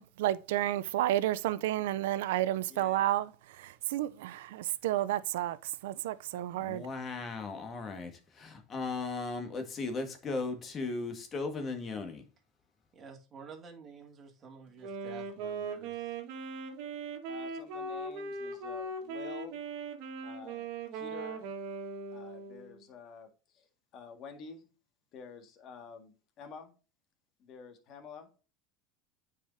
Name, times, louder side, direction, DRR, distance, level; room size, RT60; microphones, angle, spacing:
voice 1, 0.0-3.3 3.6-5.6 5.8-6.8, right 14 dB, 85° right, 0.5 m, -31 dB
voice 2, 2.7-3.1 17.3-19.6 20.2-21.5 22.1-23.3 23.5-23.7 23.9-24.7 25.1-26.7 27.4-28.3, left 5 dB, 50° left, 1.7 m, -49 dB
voice 3, 6.6-8.1 8.4-12.2, left 3 dB, 30° left, 1.7 m, -36 dB
voice 4, 12.9-16.1, right 4 dB, 30° right, 2.3 m, -51 dB
Wind instrument woodwind instrument, 14.8-22.8, right 3 dB, 65° right, 1.6 m, -39 dB
9.3 x 4.9 x 2.7 m
supercardioid pair, 120°, 0 cm